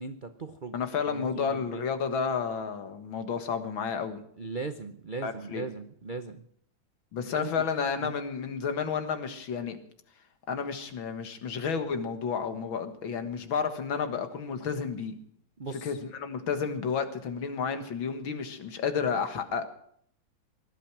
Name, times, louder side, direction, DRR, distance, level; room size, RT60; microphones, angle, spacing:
voice 1, 0.0-0.8 1.1-1.8 4.4-6.5 7.3-7.5 8.0-8.1 15.6-16.0, right 4 dB, 65° right, 9 dB, 0.5 m, -38 dB
voice 2, 0.7-4.2 5.2-5.7 7.1-9.8 10.5-15.1 15.8-19.7, left 6 dB, 75° left, 8 dB, 2.3 m, -31 dB
19.0 x 12.0 x 6.0 m, 0.65 s
omnidirectional pair, 2.2 m